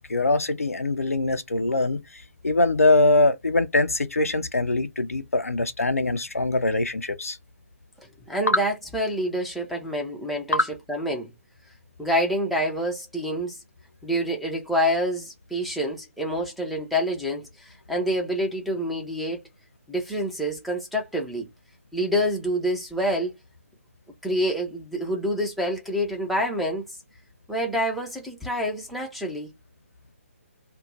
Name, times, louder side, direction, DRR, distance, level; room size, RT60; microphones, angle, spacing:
voice 1, 0.1-7.4 8.5-8.6 10.5-10.7, left 2 dB, 80° left, 0.5 m, -23 dB
voice 2, 8.3-10.6 10.9-11.3 12.0-13.6 14.0-19.4 19.9-21.5 21.9-23.3 24.2-26.8 27.5-29.5, equal, ahead, 0.5 m, -27 dB
2.5 x 2.2 x 3.0 m
figure-of-eight pair, 135°, 8 cm